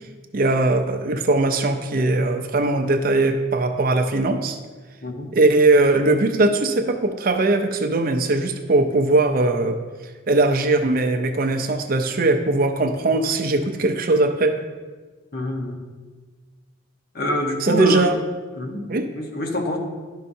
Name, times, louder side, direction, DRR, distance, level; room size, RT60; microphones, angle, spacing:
voice 1, 0.3-4.6 5.3-9.8 10.3-14.6 17.6-18.1 18.9-19.1, right 2 dB, 45° right, 6 dB, 0.5 m, -20 dB
voice 2, 5.0-5.3 15.3-15.8 17.1-18.1 18.6-18.8 19.1-19.8, left 1 dB, 50° left, 2 dB, 0.9 m, -26 dB
11.0 x 5.5 x 2.7 m, 1.4 s
head